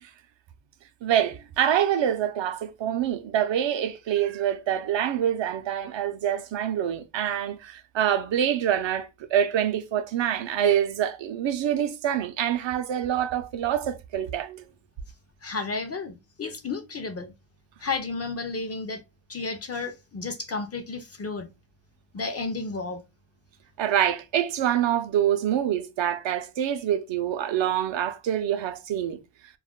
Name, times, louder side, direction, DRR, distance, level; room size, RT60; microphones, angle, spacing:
voice 1, 1.0-14.7 23.8-29.2, right 10 dB, 60° right, 0.6 m, -26 dB
voice 2, 15.4-17.3 17.8-19.0 19.3-21.5 22.1-23.0, left 4 dB, 30° left, 0.5 m, -32 dB
2.4 x 2.1 x 3.6 m
cardioid pair, 95°, 50 cm